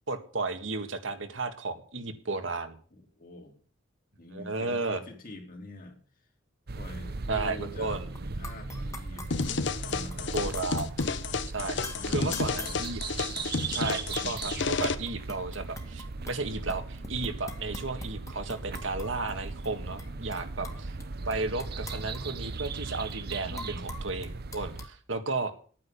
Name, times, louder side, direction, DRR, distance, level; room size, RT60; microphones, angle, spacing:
voice 1, 0.1-2.8 4.3-5.0 7.3-8.1 10.3-10.9 11.5-13.0 13.7-20.9 21.3-25.5, right 3 dB, 75° right, 7 dB, 1.8 m, -33 dB
voice 2, 2.9-3.6 4.2-6.0 6.8-8.0 8.4-9.3 9.6-10.6 11.9-12.8 13.3-13.5 20.2-20.4 23.5-23.8, left 2 dB, 45° left, 3 dB, 3.3 m, -45 dB
sound 1, 6.7-24.9, right 3 dB, 55° right, 0.9 m, -38 dB
sound 2, 8.2-8.3 8.4-11.1 11.8-13.5 13.9-16.4 16.7-19.4 19.6-19.7 20.0-21.0 21.3-24.9, left 2 dB, 15° left, 1.9 m, -45 dB
sound 3, 9.3-14.9, left 4 dB, 65° left, 1.0 m, -31 dB
12.0 x 9.4 x 7.0 m, 0.43 s
head